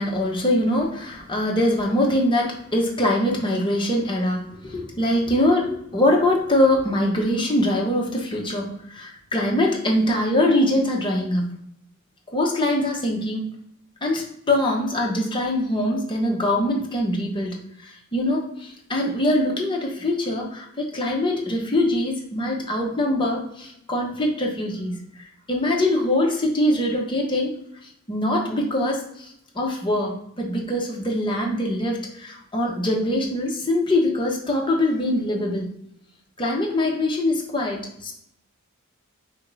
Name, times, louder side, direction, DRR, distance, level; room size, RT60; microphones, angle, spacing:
voice 1, 0.0-11.5 12.3-13.4 14.0-27.5 28.1-35.7 36.4-38.1, left 1 dB, 20° left, -1 dB, 0.9 m, -23 dB
4.0 x 2.6 x 4.7 m, 0.74 s
head